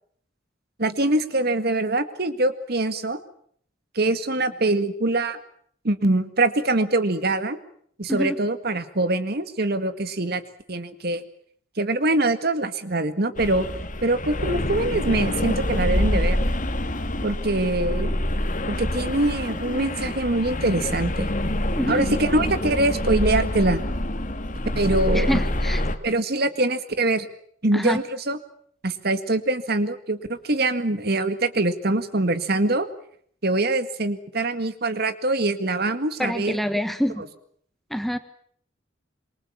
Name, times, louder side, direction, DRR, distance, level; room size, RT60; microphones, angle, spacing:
voice 1, 0.8-3.2 3.9-5.4 5.8-7.6 8.0-10.4 10.7-11.2 11.8-13.7 14.0-16.4 17.2-18.2 18.7-21.3 21.9-23.8 24.8-25.4 26.0-27.3 27.6-28.4 28.8-32.9 33.4-36.6, right 2 dB, 55° right, 11 dB, 2.0 m, -23 dB
sound 1, 13.4-26.0, left 1 dB, 45° left, 2.0 m, -26 dB
voice 2, 21.8-22.1 25.1-25.8 27.7-28.0 36.2-37.2 37.9-38.2, equal, ahead, 11 dB, 1.3 m, -26 dB
27.0 x 23.5 x 7.3 m, 0.63 s
head